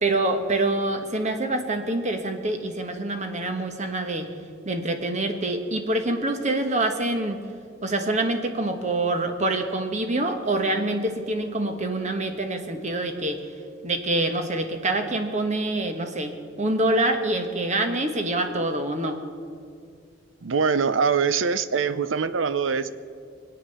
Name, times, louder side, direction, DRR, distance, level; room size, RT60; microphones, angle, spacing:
voice 1, 0.0-4.3 4.6-7.4 7.8-13.4 13.8-19.2, right 2 dB, 40° right, 6 dB, 1.4 m, -26 dB
voice 2, 20.4-22.9, right 5 dB, 80° right, 14 dB, 0.6 m, -23 dB
22.5 x 9.0 x 6.8 m, 2.2 s
head